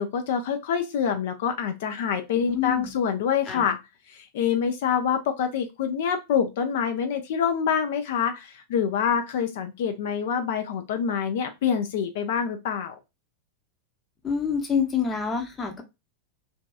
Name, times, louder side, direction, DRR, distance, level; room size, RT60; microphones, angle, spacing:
voice 1, 0.0-3.8 4.1-12.9, left 7 dB, 55° left, 0.4 m, -26 dB
voice 2, 2.3-3.0 3.5-3.7 14.2-15.8, left 6 dB, 20° left, 0.7 m, -27 dB
2.6 x 2.2 x 2.2 m
figure-of-eight pair, 90°, 0 cm